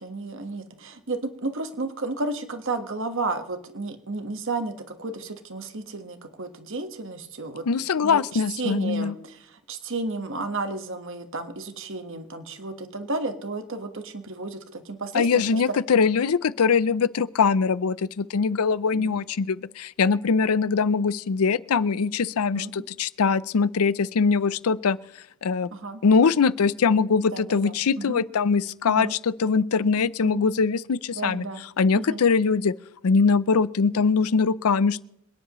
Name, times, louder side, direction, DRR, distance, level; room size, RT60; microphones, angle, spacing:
voice 1, 0.0-7.7 8.0-15.6 18.9-19.2 22.5-22.7 25.7-26.0 27.3-28.2 28.8-29.1 30.2-30.5 31.1-31.6 31.9-32.2, right 3 dB, 60° right, 7 dB, 1.4 m, -33 dB
voice 2, 7.7-9.1 15.1-25.0 25.4-25.7 26.0-31.5 31.8-32.7 33.0-35.0, left 5 dB, 85° left, 18 dB, 0.5 m, -22 dB
26.5 x 10.0 x 3.1 m, 0.81 s
head